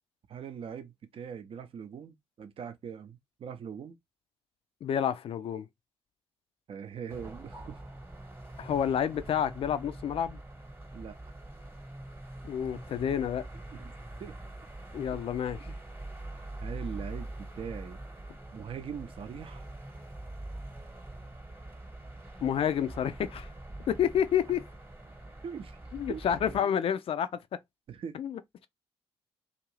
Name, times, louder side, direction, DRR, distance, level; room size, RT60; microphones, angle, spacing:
voice 1, 0.3-4.0 6.7-7.7 10.9-11.2 13.7-13.9 14.2-14.6 15.7-15.8 16.6-18.0 18.5-19.6 25.4-25.8 26.1-26.7 27.9-28.2, right 7 dB, 40° right, 0.6 m, -42 dB
voice 2, 4.8-5.7 8.6-10.4 12.4-13.4 14.9-15.6 22.4-23.5 23.9-24.6 25.9-27.3 28.1-28.4, left 9 dB, 45° left, 0.4 m, -29 dB
sound 1, 7.1-26.6, right 1 dB, 15° right, 1.1 m, -44 dB
2.6 x 2.5 x 3.1 m
figure-of-eight pair, 40°, 13 cm